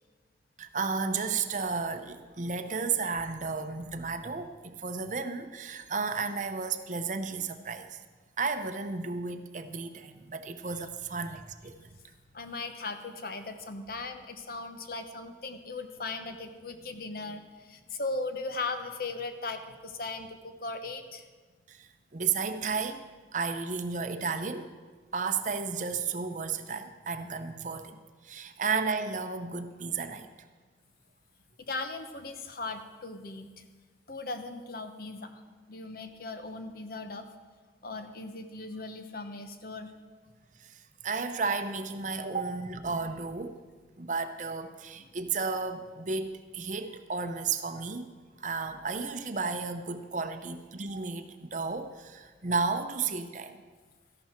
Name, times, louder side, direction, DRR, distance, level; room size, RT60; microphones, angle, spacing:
voice 1, 0.6-8.0 8.4-11.9 21.7-23.0 23.3-24.7 25.1-30.3 40.6-43.6 44.0-48.1 48.4-53.6, right 4 dB, 45° right, 8 dB, 0.7 m, -33 dB
voice 2, 12.3-21.2 31.7-33.6 34.1-35.4 35.7-37.2 37.8-39.9, left 3 dB, 55° left, 8 dB, 0.9 m, -38 dB
14.0 x 11.5 x 4.4 m, 1.4 s
head